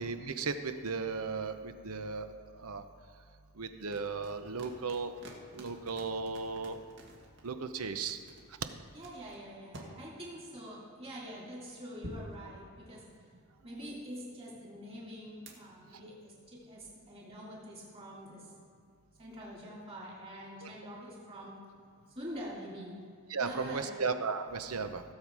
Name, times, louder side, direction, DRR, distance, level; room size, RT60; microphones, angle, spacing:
voice 1, 0.0-2.3 2.6-2.8 3.6-5.1 5.5-6.8 7.4-8.2 20.6-20.7 23.3-25.0, right 4 dB, 75° right, 9 dB, 0.8 m, -35 dB
sound 1, 3.9-7.5 7.9-9.9 12.0-13.4 15.5-15.6, right 1 dB, 55° right, 1.8 m, -49 dB
voice 2, 8.9-13.0 13.6-18.5 19.2-21.6 22.1-23.0 23.4-23.9, equal, 25° right, -5 dB, 3.4 m, -45 dB
16.5 x 7.4 x 4.8 m, 2.3 s
head